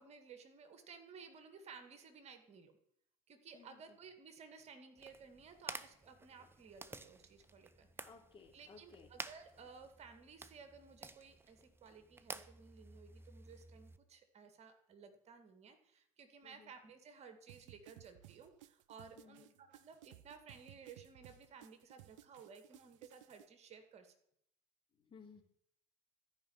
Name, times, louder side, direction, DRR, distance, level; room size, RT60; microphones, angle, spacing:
voice 1, 0.0-2.7 3.3-8.1 8.5-24.2, right 5 dB, 40° right, 7 dB, 2.0 m, -57 dB
voice 2, 3.5-4.0 8.0-9.1 16.4-16.7 19.2-19.5 25.0-25.4, left 5 dB, 30° left, 2 dB, 3.2 m, -59 dB
sound 1, 5.0-14.0, right 3 dB, 15° right, 0.9 m, -52 dB
sound 2, 17.5-23.5, right 15 dB, 70° right, 0.5 m, -60 dB
14.0 x 5.7 x 8.8 m, 0.72 s
hypercardioid pair, 70°, 17 cm